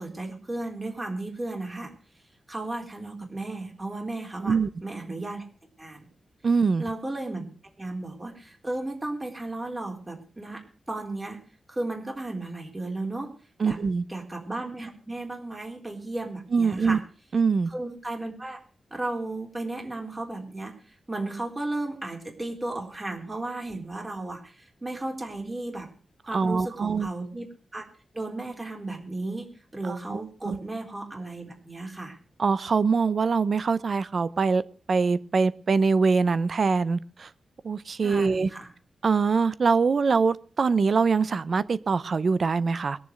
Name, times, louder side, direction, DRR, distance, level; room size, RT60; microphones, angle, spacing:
voice 1, 0.0-1.9 2.5-4.6 4.8-5.5 5.8-6.1 6.8-7.5 7.8-10.6 10.9-11.4 11.7-13.3 13.6-13.8 14.1-17.0 17.7-18.6 18.9-20.7 21.1-25.9 26.2-27.5 27.7-27.9 28.1-32.2 38.0-38.7, right 2 dB, 20° right, 3.8 m, -34 dB
voice 2, 6.4-6.8 13.6-14.0 16.5-17.0 17.3-17.7 26.3-27.1 29.8-30.6 32.4-34.6 34.9-37.3 37.6-38.5 39.0-43.0, right 5 dB, 45° right, 0.7 m, -23 dB
21.5 x 7.3 x 6.4 m
wide cardioid pair, 150°, 0 cm